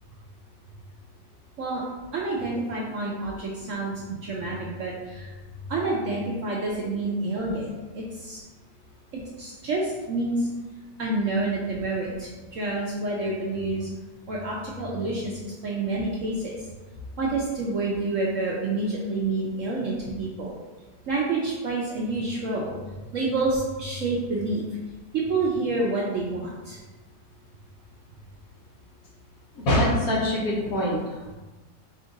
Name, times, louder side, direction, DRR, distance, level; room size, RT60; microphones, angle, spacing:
voice 1, 2.1-3.9 4.2-5.3 5.7-8.4 9.4-10.5 11.0-13.9 14.3-16.5 17.2-20.5 21.1-22.7 23.1-24.6 25.1-26.8, right 2 dB, 65° right, -4 dB, 0.8 m, -28 dB
voice 2, 29.6-31.3, left 1 dB, 60° left, -4 dB, 1.3 m, -24 dB
4.3 x 2.5 x 3.9 m, 1.2 s
omnidirectional pair, 1.8 m